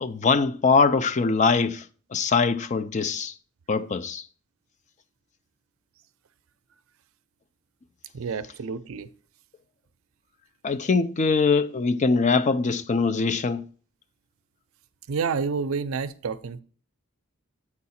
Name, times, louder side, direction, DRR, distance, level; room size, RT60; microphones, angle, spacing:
voice 1, 0.0-1.8 2.1-3.3 3.7-4.2 10.6-13.6, left 4 dB, 35° left, 0.4 m, -22 dB
voice 2, 8.1-9.1 15.1-16.6, right 5 dB, 70° right, 0.5 m, -29 dB
8.6 x 4.7 x 4.2 m
head